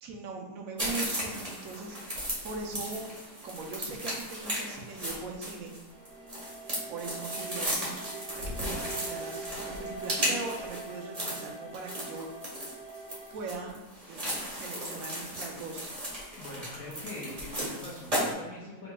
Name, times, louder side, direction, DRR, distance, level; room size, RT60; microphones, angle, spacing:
voice 1, 0.0-3.1 3.4-5.7 6.9-12.3 13.3-15.9, right 3 dB, 65° right, 1 dB, 1.0 m, -40 dB
sound 1, 0.8-18.3, equal, 25° right, 1.1 m, -35 dB
sound 2, 5.9-13.4, right 2 dB, 85° right, 2.0 m, -43 dB
voice 2, 16.4-18.9, left 2 dB, 60° left, -6 dB, 1.1 m, -42 dB
5.2 x 3.1 x 2.3 m, 1.2 s
omnidirectional pair, 1.8 m